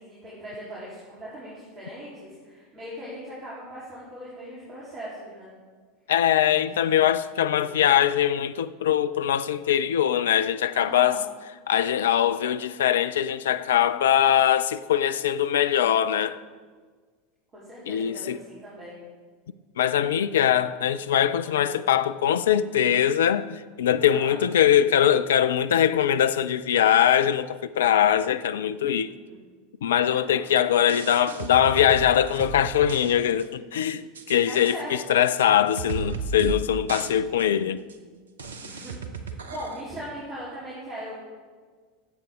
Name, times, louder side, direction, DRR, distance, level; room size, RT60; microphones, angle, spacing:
voice 1, 0.0-5.5 6.7-6.8 7.6-7.8 10.7-11.2 17.5-19.0 21.4-21.8 24.1-24.4 29.1-29.5 30.0-30.5 34.5-35.0 38.6-41.2, equal, 35° right, 3.8 m, -40 dB
voice 2, 6.1-11.2 11.7-16.4 17.9-18.4 19.8-29.1 29.8-37.8, left 10 dB, 65° left, 0.5 m, -22 dB
sound 1, 30.8-33.1 33.4-33.5 33.9-34.4 34.7-34.8 35.4-35.5 35.8-36.6 36.9-37.1 37.4-37.5 37.9-38.0 38.4-39.8, right 4 dB, 75° right, 0.9 m, -34 dB
19.5 x 8.1 x 3.8 m
figure-of-eight pair, 80°, 0 cm